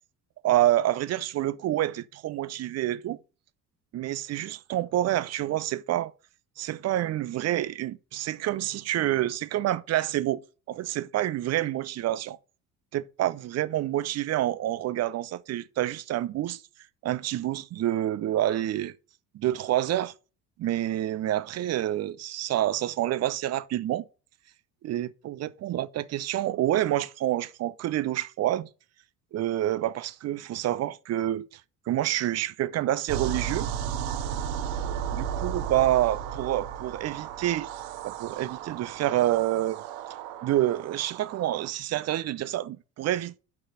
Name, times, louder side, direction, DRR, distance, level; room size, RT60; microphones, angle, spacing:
voice 1, 0.4-3.2 3.9-6.1 6.6-10.4 10.7-12.4 12.9-16.6 17.0-18.9 19.3-20.1 20.6-24.1 24.8-28.7 29.3-31.5 31.9-33.7 35.1-37.7 38.0-39.8 40.4-43.4, right 13 dB, 35° right, 0.6 m, -28 dB
sound 1, 33.1-41.7, right 8 dB, 50° right, 0.9 m, -34 dB
7.5 x 5.7 x 6.8 m
figure-of-eight pair, 55°, 49 cm